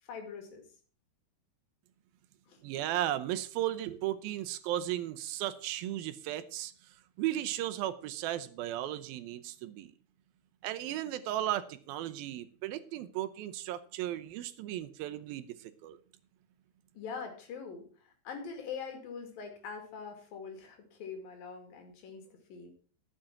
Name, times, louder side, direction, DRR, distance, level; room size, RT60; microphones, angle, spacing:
voice 1, 0.0-0.6 2.5-2.6 16.9-22.7, left 5 dB, 70° left, 4 dB, 3.9 m, -43 dB
voice 2, 2.6-6.7 7.2-9.9 10.6-16.0, right 13 dB, 85° right, 12 dB, 2.6 m, -35 dB
11.5 x 7.6 x 5.8 m, 0.42 s
omnidirectional pair, 4.2 m